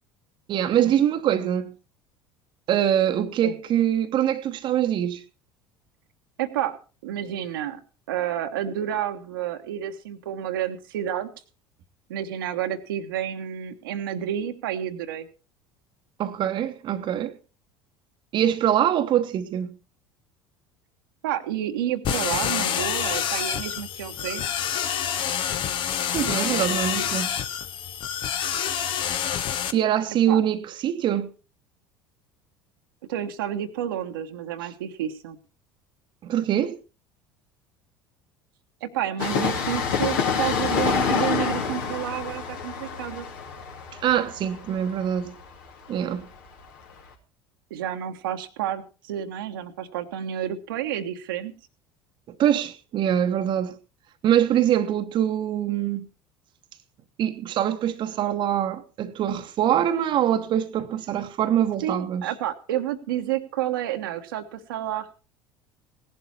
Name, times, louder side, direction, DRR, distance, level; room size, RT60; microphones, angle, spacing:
voice 1, 0.5-1.7 2.7-5.2 16.2-17.3 18.3-19.7 26.1-27.4 29.7-31.3 36.2-36.8 44.0-45.3 45.9-46.3 52.4-53.8 54.2-56.1 57.2-62.3, right 10 dB, 40° right, 1.1 m, -24 dB
voice 2, 6.4-6.8 7.0-7.8 8.1-11.3 12.1-15.3 21.2-24.4 30.3-30.4 33.1-35.4 38.8-43.3 47.7-51.5 61.8-65.2, right 11 dB, 65° right, 1.3 m, -30 dB
sound 1, 22.0-29.7, left 9 dB, 45° left, 1.2 m, -27 dB
Train, 39.2-46.6 46.9-47.0, left 6 dB, 65° left, 2.6 m, -27 dB
17.0 x 11.5 x 4.3 m
figure-of-eight pair, 65°, 12 cm